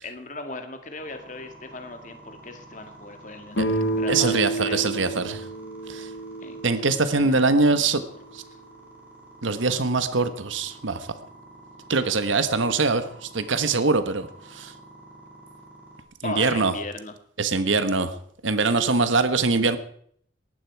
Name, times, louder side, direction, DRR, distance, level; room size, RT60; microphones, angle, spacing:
voice 1, 0.0-4.8 6.4-7.9 8.5-8.6 16.2-17.1 18.7-19.2, left 2 dB, 40° left, 6 dB, 2.1 m, -38 dB
sound 1, 0.9-16.0, right 2 dB, 10° right, 4.6 m, -49 dB
sound 2, 3.5-7.1, right 2 dB, 70° left, 2.4 m, -29 dB
voice 2, 4.1-5.5 5.9-6.1 6.6-8.0 8.3-8.4 9.4-11.1 11.9-14.7 16.2-16.7 17.4-18.1 18.4-19.8, right 3 dB, 85° right, 11 dB, 1.3 m, -23 dB
19.0 x 14.0 x 4.7 m, 0.63 s
head